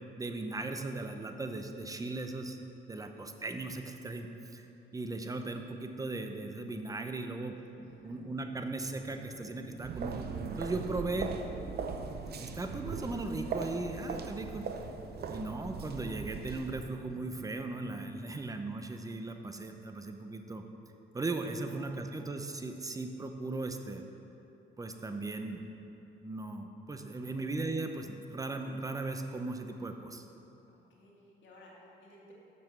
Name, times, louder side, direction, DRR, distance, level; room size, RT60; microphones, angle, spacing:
voice 1, 0.2-2.6 2.9-4.7 4.9-7.6 8.0-10.3 10.6-11.3 12.4-14.7 15.3-20.6 21.1-24.0 24.8-25.7 26.2-30.3, right 2 dB, 15° right, 6 dB, 0.7 m, -37 dB
voice 2, 7.8-8.2 18.3-18.5 21.7-21.8 27.3-27.4 30.7-32.3, left 1 dB, 70° left, -3 dB, 2.1 m, -58 dB
sound 1, 7.8-18.2, equal, 10° left, 1.1 m, -52 dB
sound 2, 9.8-16.8, right 5 dB, 55° right, 0.7 m, -39 dB
7.5 x 5.8 x 6.8 m, 3.0 s
cardioid pair, 90°, 20 cm